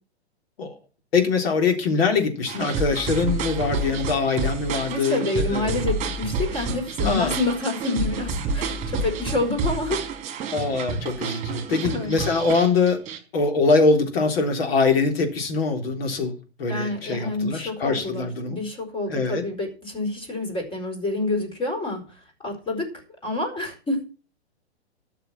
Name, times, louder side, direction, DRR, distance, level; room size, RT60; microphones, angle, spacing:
voice 1, 1.1-5.8 7.0-7.4 10.5-13.0 13.3-18.6 19.1-19.4, left 4 dB, 60° left, 3.8 m, -23 dB
sound 1, 2.5-13.2, right 4 dB, 20° right, 3.5 m, -29 dB
voice 2, 4.9-10.1 11.8-12.1 16.7-22.0 22.4-24.0, left 2 dB, 15° left, 4.8 m, -28 dB
13.0 x 6.8 x 7.3 m
hypercardioid pair, 120°, 33 cm